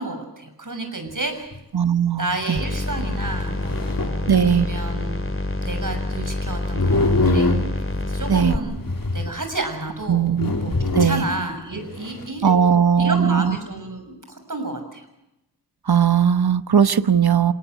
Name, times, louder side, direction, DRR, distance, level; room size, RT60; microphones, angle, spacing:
voice 1, 0.0-1.6 2.2-7.5 8.1-8.8 9.1-10.3 10.6-12.5 13.0-15.0, right 2 dB, 55° right, 6 dB, 6.7 m, -30 dB
sound 1, 1.1-1.2 1.5-1.6 2.3-2.4 3.3-4.8 6.7-8.1 8.7-9.5 10.0-10.1 10.4-11.4 11.7-12.3, left 2 dB, 65° left, 3.2 m, -23 dB
voice 2, 1.7-2.6 4.3-4.7 8.3-8.5 10.1-10.5 10.9-11.2 12.4-13.6 15.9-17.5, right 7 dB, 90° right, 12 dB, 1.1 m, -18 dB
sound 2, 2.6-8.6, left 2 dB, 35° left, 2.9 m, -27 dB
28.0 x 18.5 x 8.2 m, 0.88 s
wide cardioid pair, 55°, 37 cm